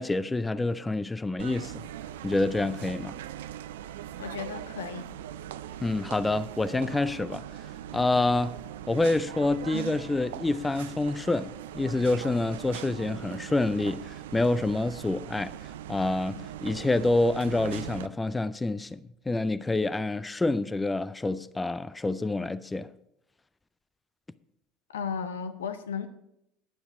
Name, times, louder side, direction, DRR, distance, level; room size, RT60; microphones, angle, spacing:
voice 1, 0.0-1.9 2.2-3.2 5.8-8.6 8.9-19.0 19.3-22.9, left 2 dB, 15° left, 0.4 m, -27 dB
sound 1, 1.4-18.1, right 11 dB, 80° right, 0.4 m, -40 dB
voice 2, 4.2-5.1 24.9-26.1, left 6 dB, 85° left, 0.8 m, -34 dB
10.0 x 8.8 x 4.8 m
hypercardioid pair, 75°, 0 cm